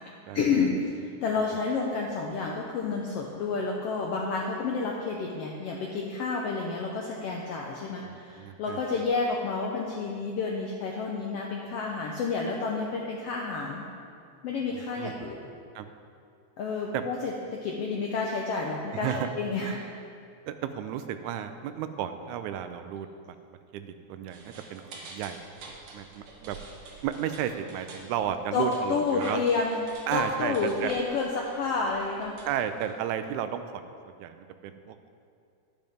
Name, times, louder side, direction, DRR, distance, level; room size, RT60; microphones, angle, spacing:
voice 1, 0.3-13.8 14.4-15.5 16.6-19.9 28.5-29.8 30.1-32.4, left 4 dB, 80° left, -1 dB, 1.4 m, -30 dB
voice 2, 8.0-8.8 14.7-15.1 15.8-15.9 16.9-17.0 18.9-19.3 19.6-19.8 20.5-23.4 23.7-25.4 25.9-26.6 27.0-29.4 30.1-30.5 30.8-30.9 32.5-35.1, right 9 dB, 80° right, 9 dB, 1.9 m, -33 dB
sound 1, 24.3-33.3, right 2 dB, 60° right, 1.6 m, -47 dB
10.5 x 10.5 x 3.5 m, 2.5 s
omnidirectional pair, 3.6 m